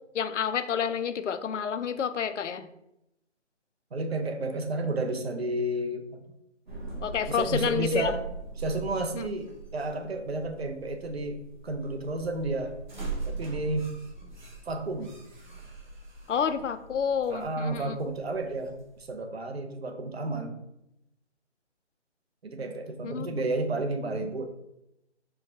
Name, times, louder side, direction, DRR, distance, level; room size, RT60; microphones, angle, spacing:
voice 1, 0.1-2.7 7.0-8.1 9.1-9.4 16.3-18.0 23.0-23.5, left 7 dB, 80° left, 11 dB, 0.5 m, -29 dB
voice 2, 3.9-6.2 7.3-8.2 8.6-12.7 13.3-13.9 14.7-15.1 17.3-18.8 19.1-20.6 22.4-24.5, right 2 dB, 60° right, 5 dB, 0.7 m, -31 dB
sound 1, 6.7-19.1, right 3 dB, 40° right, 1.1 m, -41 dB
4.6 x 2.3 x 4.6 m, 0.85 s
hypercardioid pair, 170°, 36 cm